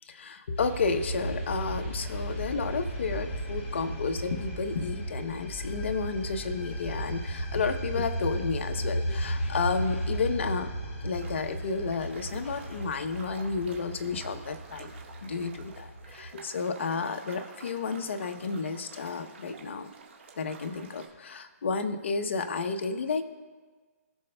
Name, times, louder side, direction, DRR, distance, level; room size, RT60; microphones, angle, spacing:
voice 1, 0.1-10.7 11.0-14.9 15.2-19.9 20.4-23.2, left 4 dB, 50° left, 7 dB, 0.7 m, -31 dB
sound 1, 0.6-16.3, right 1 dB, 30° left, 2.3 m, -35 dB
sound 2, 11.2-21.1, right 5 dB, 45° right, 1.9 m, -49 dB
19.0 x 6.5 x 2.2 m, 1.4 s
hypercardioid pair, 170°, 9 cm